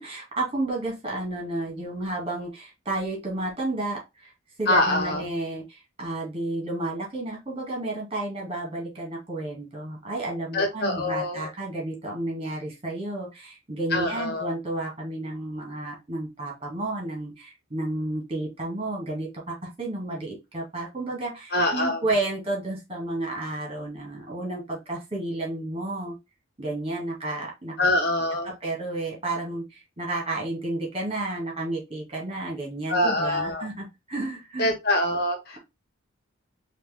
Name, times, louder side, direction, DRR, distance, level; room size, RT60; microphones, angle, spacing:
voice 1, 0.0-4.3 4.6-26.2 26.6-27.7 28.4-34.7, right 2 dB, 30° right, -2 dB, 2.2 m, -31 dB
voice 2, 4.7-5.2 10.5-11.5 13.9-14.5 21.5-22.0 27.8-28.5 32.9-33.7 34.6-35.6, left 1 dB, 55° left, 3 dB, 1.5 m, -24 dB
4.9 x 2.9 x 3.6 m, 0.23 s
head